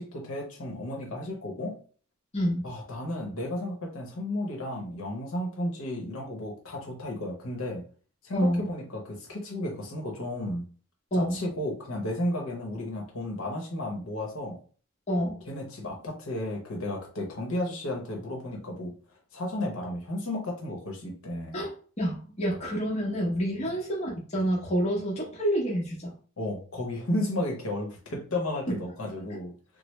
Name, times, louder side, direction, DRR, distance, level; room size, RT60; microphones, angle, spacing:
voice 1, 0.0-1.8 2.6-7.8 8.2-10.6 11.1-14.6 15.4-18.9 19.3-21.6 26.4-29.5, left 1 dB, 70° left, 1 dB, 0.8 m, -33 dB
voice 2, 2.3-2.7 8.3-8.7 11.1-11.4 15.1-15.4 21.5-26.1, equal, 30° left, -3 dB, 0.8 m, -28 dB
3.1 x 2.0 x 3.1 m, 0.41 s
head